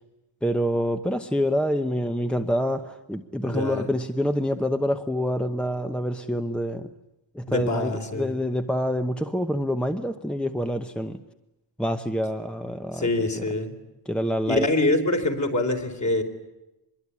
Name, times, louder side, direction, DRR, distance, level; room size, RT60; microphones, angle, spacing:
voice 1, 0.4-6.9 7.3-11.2 11.8-13.5 14.1-14.7, equal, ahead, 7 dB, 0.9 m, -26 dB
voice 2, 3.4-3.8 7.5-8.3 12.9-13.8 14.5-16.2, left 2 dB, 40° left, 3 dB, 3.9 m, -25 dB
24.5 x 22.5 x 9.7 m, 0.95 s
wide cardioid pair, 160°, 43 cm